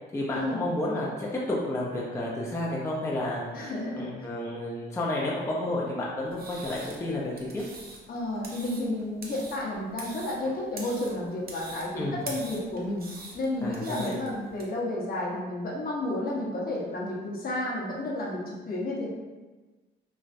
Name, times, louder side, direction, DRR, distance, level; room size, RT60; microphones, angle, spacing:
voice 1, 0.1-3.4 4.0-7.6 12.0-12.2 13.6-14.2, left 1 dB, 15° left, -4 dB, 0.5 m, -31 dB
voice 2, 3.5-4.1 8.1-13.1 13.3-19.1, left 1 dB, 50° left, -3 dB, 0.8 m, -31 dB
sound 1, 6.3-14.6, right 3 dB, 50° right, 0.7 m, -44 dB
3.2 x 2.4 x 2.5 m, 1.2 s
cardioid pair, 90°, 20 cm